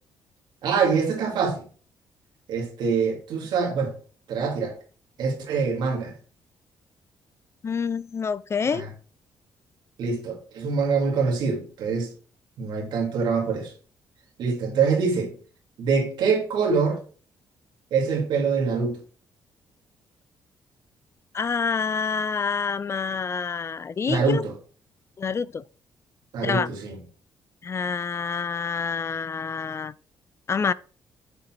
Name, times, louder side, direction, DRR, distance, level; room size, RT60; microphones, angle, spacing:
voice 1, 0.6-1.7 2.5-3.9 4.3-4.8 5.2-6.1 8.6-8.9 10.0-12.1 12.6-13.7 14.4-15.3 15.8-17.0 17.9-19.0 24.1-24.5 26.3-27.0, right 5 dB, 75° right, 2.0 m, -24 dB
voice 2, 7.6-8.9 21.3-24.4 25.2-25.6 26.4-26.7 27.6-29.9 30.5-30.7, left 5 dB, 35° left, 0.3 m, -27 dB
6.7 x 4.0 x 4.4 m
cardioid pair, 75°, 8 cm